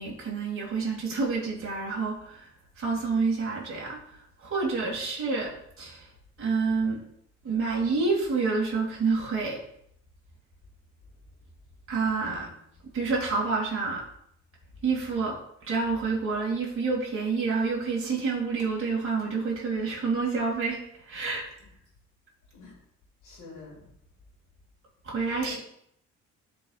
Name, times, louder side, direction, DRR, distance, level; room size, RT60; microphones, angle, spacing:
voice 1, 0.0-2.5 2.8-6.1 6.4-7.0 7.4-9.6 11.9-12.5 12.9-14.0 14.8-15.4 15.6-20.8 21.1-21.5 25.0-25.6, right 4 dB, 45° right, -4 dB, 2.1 m, -28 dB
voice 2, 12.2-12.6 22.5-22.8 23.2-23.9 25.4-25.5, left 4 dB, 80° left, -6 dB, 1.9 m, -46 dB
11.0 x 4.3 x 2.3 m, 0.70 s
cardioid pair, 90°, 30 cm